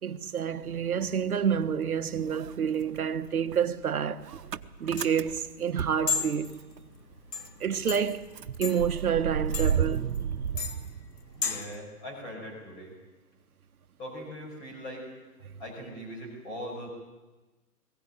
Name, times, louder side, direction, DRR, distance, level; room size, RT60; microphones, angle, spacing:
voice 1, 0.0-4.3 4.8-6.6 7.6-8.2 8.6-10.0, right 7 dB, 65° right, 1.3 m, -28 dB
Motor vehicle (road) / Engine starting, 0.6-1.8 2.1-6.8 7.1-7.2 7.4-11.6, right 8 dB, 85° right, 1.0 m, -34 dB
sound 1, 4.4-11.8, left 5 dB, 85° left, 2.2 m, -36 dB
voice 2, 11.4-12.9 14.0-15.1 15.6-16.9, equal, 10° left, 5.3 m, -40 dB
21.5 x 16.0 x 9.0 m
hypercardioid pair, 170°, 48 cm